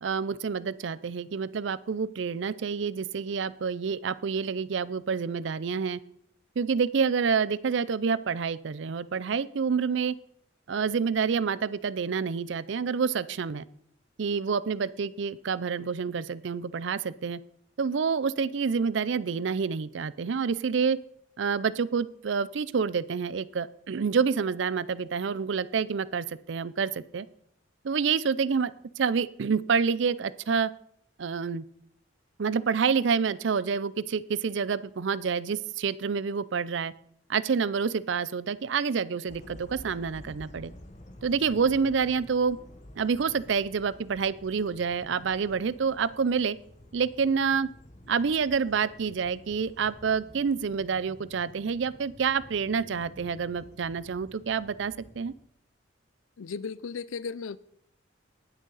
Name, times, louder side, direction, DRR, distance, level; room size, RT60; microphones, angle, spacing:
voice 1, 0.0-6.0 6.6-10.1 10.7-13.6 14.2-17.4 17.8-21.0 21.4-27.3 27.8-30.7 31.2-31.6 32.4-36.9 37.3-40.7 41.2-42.6 43.0-46.6 46.9-47.7 48.1-55.3, right 6 dB, 65° right, 18 dB, 0.5 m, -28 dB
sound 1, 39.3-55.4, left 1 dB, 35° left, 1.2 m, -50 dB
voice 2, 56.4-57.6, left 5 dB, 90° left, 19 dB, 0.5 m, -35 dB
19.5 x 6.4 x 4.0 m, 0.67 s
head